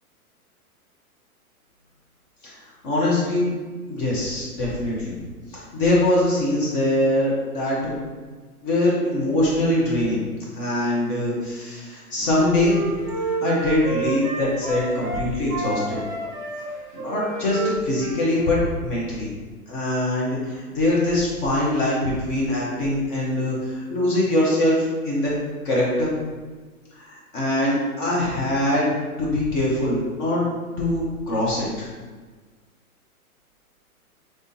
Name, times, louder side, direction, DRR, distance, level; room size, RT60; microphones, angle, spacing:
voice 1, 2.8-3.5 3.9-5.2 5.5-8.0 8.6-10.2 10.5-12.8 13.2-16.0 16.9-19.3 19.7-25.3 25.6-26.1 26.9-28.9 29.2-30.4 30.8-31.9, left 1 dB, 35° left, -5 dB, 1.0 m, -23 dB
Wind instrument woodwind instrument, 12.2-15.2 15.5-18.8, right 2 dB, 15° right, 0.4 m, -30 dB
3.6 x 3.3 x 2.7 m, 1.4 s
hypercardioid pair, 130°, 45 cm